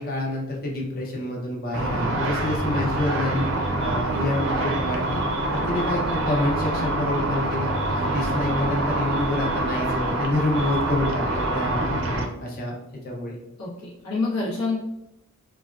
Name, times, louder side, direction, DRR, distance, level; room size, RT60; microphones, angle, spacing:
voice 1, 0.0-3.5 3.8-5.2 5.5-12.8 13.0-13.3, left 1 dB, 45° left, -2 dB, 0.6 m, -28 dB
Car / Traffic noise roadway noise / Engine, 1.7-12.3, right 1 dB, 60° right, 0.4 m, -26 dB
voice 2, 3.3-3.7 10.3-10.4 13.6-14.8, left 3 dB, 85° left, -7 dB, 0.8 m, -28 dB
3.3 x 2.2 x 2.3 m, 0.86 s
head